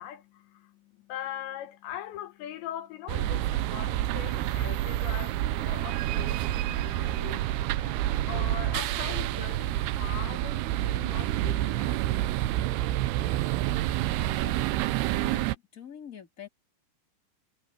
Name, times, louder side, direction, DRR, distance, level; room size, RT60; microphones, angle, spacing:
voice 1, 0.0-12.2, left 11 dB, 80° left, 3.4 m, -41 dB
sound 1, 3.1-15.6, right 14 dB, 75° right, 2.6 m, -28 dB
voice 2, 14.1-14.7 15.1-16.5, left 9 dB, 20° left, 3.3 m, -46 dB
omnidirectional pair, 5.1 m